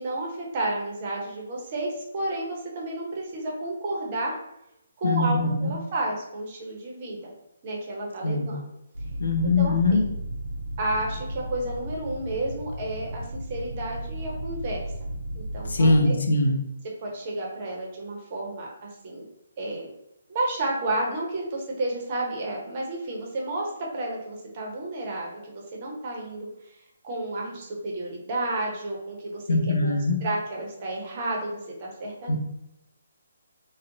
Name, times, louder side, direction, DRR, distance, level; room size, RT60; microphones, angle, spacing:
voice 1, 0.0-4.4 5.0-7.3 7.6-8.7 9.4-10.0 10.8-14.9 15.3-16.2 17.0-19.2 19.6-19.9 20.3-26.5 27.0-29.9 30.2-32.4, right 2 dB, 35° right, -2 dB, 0.6 m, -31 dB
voice 2, 5.0-5.7 8.2-8.6 9.2-10.0 15.7-16.6 29.5-30.2 32.3-32.4, left 2 dB, 60° left, 3 dB, 0.4 m, -22 dB
sound 1, 8.9-16.0, right 1 dB, 75° right, 0.5 m, -35 dB
2.5 x 2.1 x 2.6 m, 0.84 s
figure-of-eight pair, 135°, 0 cm